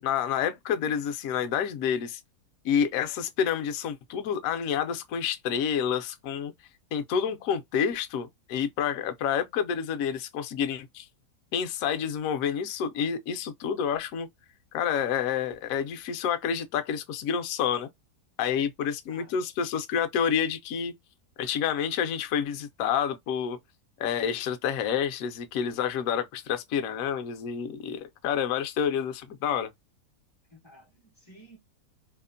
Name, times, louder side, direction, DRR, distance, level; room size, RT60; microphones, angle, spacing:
voice 1, 0.0-2.2 2.6-6.5 6.9-11.1 11.5-14.3 14.7-17.9 18.4-20.9 21.4-23.6 24.0-29.7, left 8 dB, 70° left, 0.8 m, -29 dB
voice 2, 19.1-19.4 30.5-31.6, right 1 dB, 35° left, 0.4 m, -53 dB
2.8 x 2.1 x 2.4 m
omnidirectional pair, 1.8 m